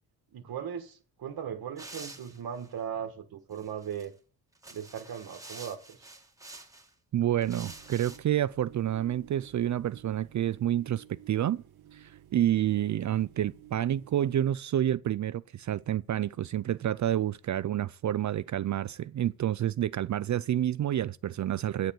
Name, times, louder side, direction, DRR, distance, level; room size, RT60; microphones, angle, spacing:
voice 1, 0.3-4.1 4.7-6.1, right 8 dB, 70° right, 1.4 m, -38 dB
sound 1, 1.8-2.7 3.5-4.0 4.5-6.9 7.4-8.2, right 2 dB, 10° right, 2.0 m, -48 dB
voice 2, 7.1-11.6 11.9-21.9, right 11 dB, 50° right, 0.5 m, -29 dB
sound 2, 7.4-14.5, right 12 dB, 85° right, 1.1 m, -54 dB
9.6 x 6.7 x 7.7 m
cardioid pair, 105°, 37 cm